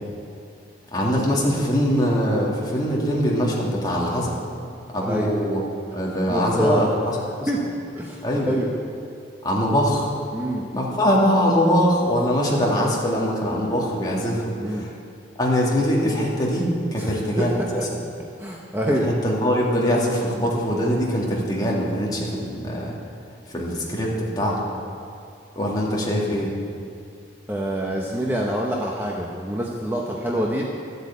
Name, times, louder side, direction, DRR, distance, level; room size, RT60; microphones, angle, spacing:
voice 1, 0.9-4.3 4.9-5.6 5.9-6.9 7.4-7.5 8.2-8.6 9.4-10.1 10.7-14.9 15.4-17.8 19.0-23.0 23.5-24.6 25.6-26.5, equal, 20° left, -4 dB, 2.3 m, -22 dB
voice 2, 6.3-6.9 7.5-7.6 7.9-8.7 10.3-10.7 14.6-14.9 17.0-17.5 18.4-19.1 27.5-30.6, equal, 10° right, -2 dB, 0.9 m, -25 dB
13.0 x 8.1 x 8.5 m, 2.5 s
head